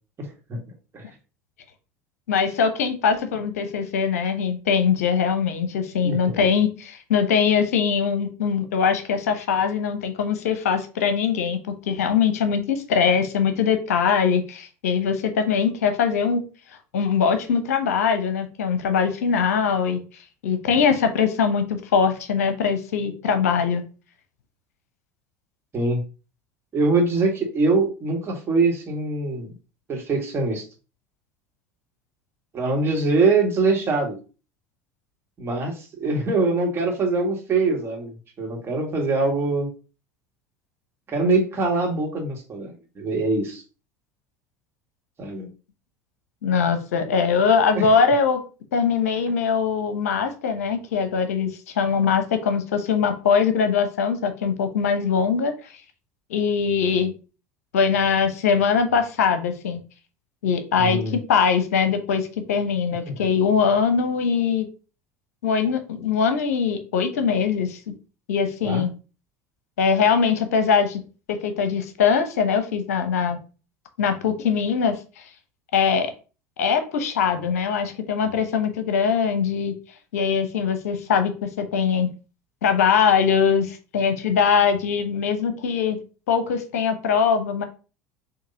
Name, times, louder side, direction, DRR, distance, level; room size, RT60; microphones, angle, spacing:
voice 1, 0.2-0.6 0.9-1.0 6.0-6.5 25.7-26.0 26.7-29.5 29.9-30.7 32.5-34.2 35.4-38.1 38.4-39.7 41.1-43.6 45.2-45.5 47.8-47.9 60.8-61.2 63.1-63.3 68.6-68.9, right 3 dB, 30° right, 0 dB, 1.8 m, -23 dB
voice 2, 2.3-11.6 11.9-16.4 16.9-20.0 20.4-23.8 46.4-48.4 48.7-55.8 56.3-57.1 57.7-59.8 60.4-64.7 65.4-67.8 68.3-68.9 69.8-71.0 71.3-73.4 74.0-75.2 75.7-76.1 76.6-79.7 80.1-82.1 82.6-86.0 86.3-87.6, left 6 dB, 70° left, 8 dB, 0.7 m, -22 dB
6.6 x 2.8 x 2.7 m, 0.34 s
figure-of-eight pair, 70°, 8 cm